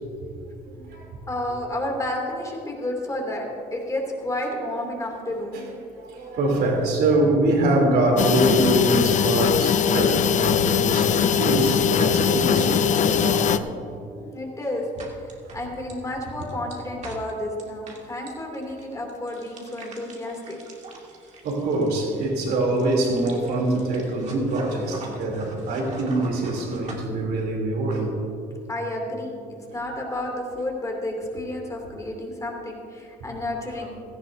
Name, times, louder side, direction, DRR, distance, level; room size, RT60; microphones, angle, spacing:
voice 1, 0.7-1.2 5.9-13.5 15.5-15.6 21.4-28.1, right 2 dB, 70° right, 0 dB, 3.1 m, -24 dB
voice 2, 1.3-5.6 13.5-14.8 15.5-20.6 28.7-29.4 29.7-33.9, left 1 dB, 20° left, 0 dB, 2.6 m, -31 dB
sound 1, 8.2-13.6, left 8 dB, 45° left, 0.5 m, -21 dB
sound 2, 14.6-27.1, right 3 dB, 45° right, 2.2 m, -44 dB
17.0 x 14.0 x 2.7 m, 2.6 s
cardioid pair, 110°, 17 cm